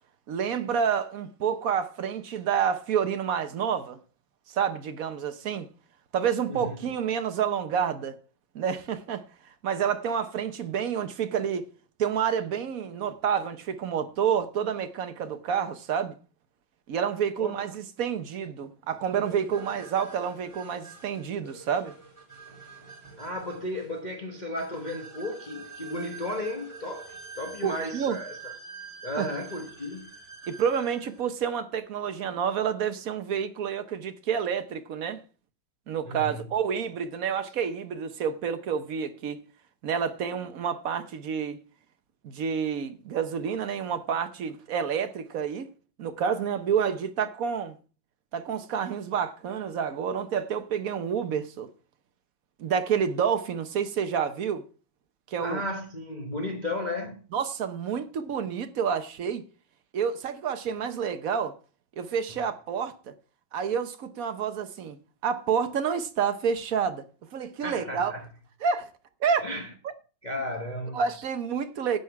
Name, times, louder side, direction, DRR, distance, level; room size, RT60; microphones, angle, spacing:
voice 1, 0.3-4.0 4.5-5.7 6.1-8.2 8.5-9.2 9.6-11.6 12.0-16.2 16.9-21.9 27.6-28.2 29.2-29.3 30.5-35.2 35.9-39.4 39.8-41.6 42.2-45.7 46.0-47.8 48.3-51.7 52.6-54.6 55.3-55.6 57.3-59.4 59.9-61.5 62.0-63.1 63.5-65.0 65.2-67.0 67.3-68.1 68.6-68.9 69.2-69.5 70.9-72.0, right 7 dB, 55° right, 1.2 m, -29 dB
sound 1, 19.2-31.2, right 4 dB, 15° right, 2.3 m, -45 dB
voice 2, 23.2-28.5 29.0-30.1 36.0-36.5 55.4-57.3 62.3-62.4 67.6-68.3 69.4-69.7 70.2-71.0, left 1 dB, 25° left, 1.1 m, -34 dB
12.0 x 8.2 x 4.7 m
omnidirectional pair, 2.1 m